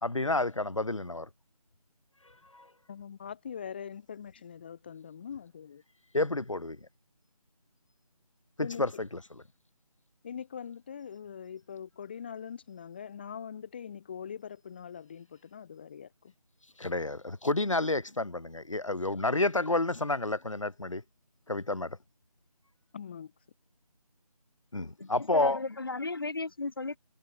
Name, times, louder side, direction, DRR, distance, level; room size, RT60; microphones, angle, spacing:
voice 1, 0.0-1.3 2.5-2.7 6.1-6.8 8.6-9.1 16.8-21.0 21.5-22.0 24.7-25.6, left 2 dB, 55° left, 4.6 m, -30 dB
voice 2, 2.9-5.8 8.6-8.8 10.2-16.3 22.9-23.3, left 7 dB, 15° left, 2.9 m, -42 dB
voice 3, 25.0-27.0, left 3 dB, 35° left, 2.0 m, -35 dB
figure-of-eight pair, 165°, 20 cm